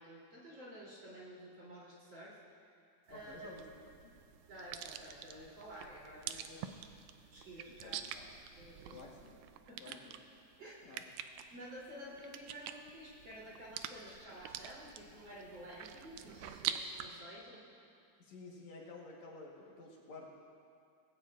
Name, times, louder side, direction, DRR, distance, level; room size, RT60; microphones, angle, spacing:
voice 1, 0.0-2.7 3.1-3.5 4.5-6.8 7.3-7.9 8.6-9.0 9.7-9.9 10.6-10.8 11.5-17.6, equal, 40° right, -7 dB, 3.7 m, -51 dB
voice 2, 3.1-3.6 4.0-4.1 7.8-8.3 8.9-9.4 9.8-10.2 10.8-11.0 18.2-20.3, left 3 dB, 65° left, -2 dB, 2.5 m, -52 dB
sound 1, 3.1-17.1, right 10 dB, 80° right, 1.9 m, -46 dB
19.5 x 16.5 x 2.4 m, 2.4 s
omnidirectional pair, 3.5 m